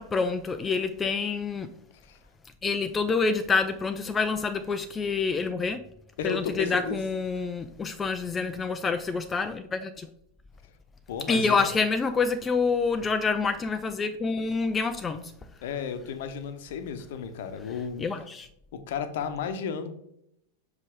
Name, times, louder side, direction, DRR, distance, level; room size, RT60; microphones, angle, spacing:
voice 1, 0.0-1.7 2.6-5.8 6.2-10.1 11.3-15.3 18.0-18.5, left 4 dB, 20° left, 0.4 m, -27 dB
voice 2, 6.2-7.0 11.1-11.6 15.6-18.1 18.7-19.9, left 6 dB, 55° left, 0.9 m, -33 dB
6.4 x 5.2 x 3.6 m
figure-of-eight pair, 90°, 0 cm